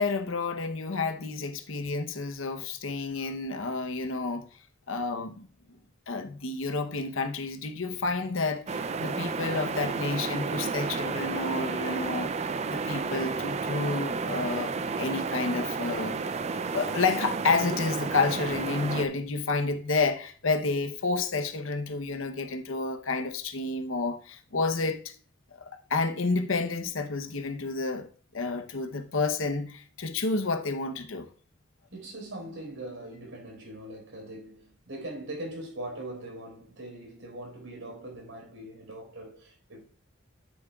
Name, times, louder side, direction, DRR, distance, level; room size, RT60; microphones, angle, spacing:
voice 1, 0.0-4.5 4.9-5.5 6.1-12.3 12.7-16.2 16.7-25.1 25.9-28.1 28.3-31.3, left 3 dB, 80° left, 0.9 m, -30 dB
sound 1, 8.7-19.1, right 4 dB, 35° right, 0.4 m, -32 dB
voice 2, 31.9-39.8, right 1 dB, 80° right, 4.5 m, -41 dB
9.3 x 8.7 x 2.4 m
head